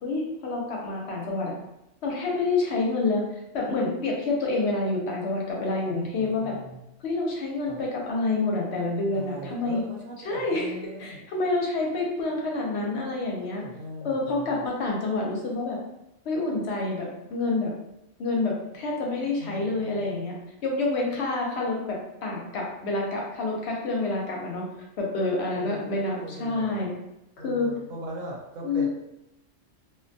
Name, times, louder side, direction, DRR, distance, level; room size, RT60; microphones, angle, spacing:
voice 1, 0.0-1.5 2.0-3.2 3.5-6.5 7.0-9.8 10.2-13.6 14.0-15.8 16.3-17.7 18.2-20.4 20.6-24.6 25.0-26.9 27.4-27.7 28.6-28.9, left 3 dB, 65° left, -1 dB, 0.8 m, -28 dB
voice 2, 5.9-6.8 7.7-7.8 9.1-11.2 13.4-14.7 19.4-20.2 25.5-26.8 27.4-28.9, equal, 90° right, -1 dB, 1.0 m, -40 dB
2.2 x 2.1 x 2.5 m, 0.90 s
omnidirectional pair, 1.3 m